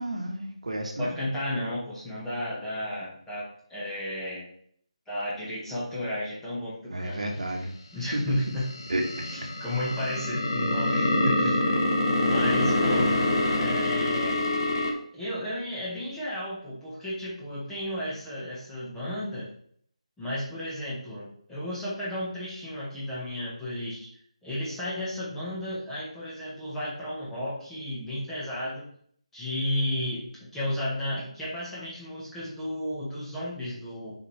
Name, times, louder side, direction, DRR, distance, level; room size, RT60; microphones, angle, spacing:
voice 1, 0.0-1.1 6.9-7.7 8.1-8.3 8.9-9.3 10.9-11.5 12.8-13.2, right 1 dB, 70° right, 2 dB, 1.5 m, -31 dB
voice 2, 1.0-4.5 5.1-7.2 7.9-8.7 9.3-11.1 11.4-11.6 12.2-13.1 13.5-14.4 15.1-19.5 20.2-24.1 24.4-28.9 29.3-30.2 30.5-34.2, left 1 dB, 5° left, -8 dB, 1.4 m, -33 dB
sound 1, 8.4-14.9, left 1 dB, 45° left, 1.0 m, -26 dB
6.4 x 5.2 x 3.3 m, 0.62 s
figure-of-eight pair, 165°, 4 cm